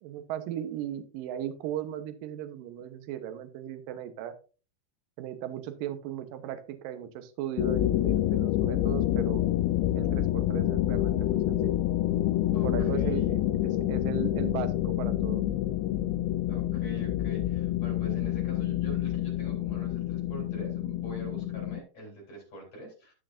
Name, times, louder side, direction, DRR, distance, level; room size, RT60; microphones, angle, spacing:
voice 1, 0.0-4.3 5.2-9.4 9.9-11.8 12.6-15.4, right 11 dB, 75° right, 9 dB, 2.2 m, -37 dB
sound 1, 7.6-21.8, left 14 dB, 85° left, 2.8 m, -28 dB
voice 2, 12.5-13.3 16.5-23.1, right 1 dB, 35° left, -1 dB, 4.6 m, -44 dB
14.0 x 6.4 x 2.6 m, 0.35 s
omnidirectional pair, 5.0 m